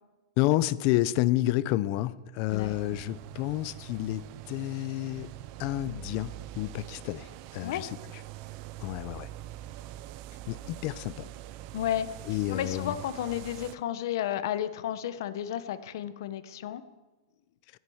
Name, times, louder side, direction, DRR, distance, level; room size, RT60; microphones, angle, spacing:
voice 1, 0.4-5.3 5.6-8.2 8.8-9.3 10.5-11.3 12.2-13.0, left 16 dB, 35° left, 18 dB, 0.5 m, -30 dB
voice 2, 2.5-3.0 7.6-7.8 11.7-16.8, left 11 dB, 55° left, 13 dB, 0.9 m, -33 dB
sound 1, 2.5-13.8, right 14 dB, 35° right, 0.4 m, -44 dB
13.0 x 10.5 x 7.8 m, 1.2 s
supercardioid pair, 175°, 2 cm